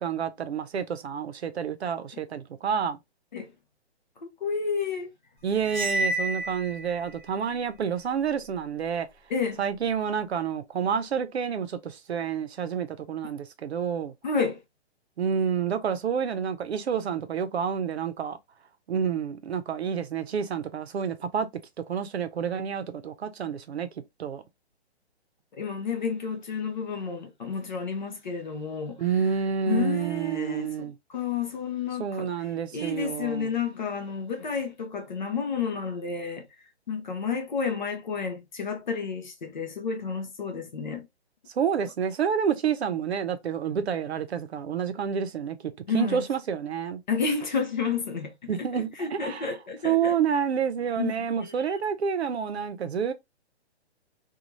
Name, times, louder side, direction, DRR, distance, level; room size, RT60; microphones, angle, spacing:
voice 1, 0.0-3.0 5.4-9.1 9.6-14.1 15.2-18.4 18.9-21.5 21.9-23.9 24.2-24.4 29.0-30.9 32.0-33.5 41.6-45.6 45.9-47.0 48.5-49.5 49.8-53.1, right 7 dB, 70° right, 0.7 m, -29 dB
voice 2, 4.2-5.1 9.3-9.6 14.2-14.6 25.6-29.1 29.7-32.3 32.7-36.5 36.9-41.1 45.9-46.2 47.1-48.5 49.0-50.2 51.0-51.8, left 5 dB, 45° left, 0.6 m, -31 dB
Cymbal, 5.6-7.1, right 1 dB, 15° right, 0.9 m, -29 dB
2.6 x 2.3 x 3.0 m
hypercardioid pair, 175°, 34 cm